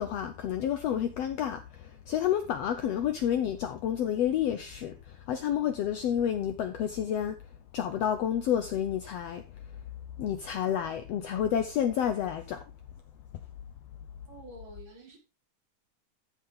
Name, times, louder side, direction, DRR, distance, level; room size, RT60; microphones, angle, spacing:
voice 1, 0.0-7.5 7.7-9.6 10.2-12.7, left 9 dB, 75° left, 1.6 m, -30 dB
voice 2, 14.3-15.2, right 1 dB, 40° right, 3.0 m, -48 dB
13.5 x 5.8 x 3.7 m
omnidirectional pair, 3.6 m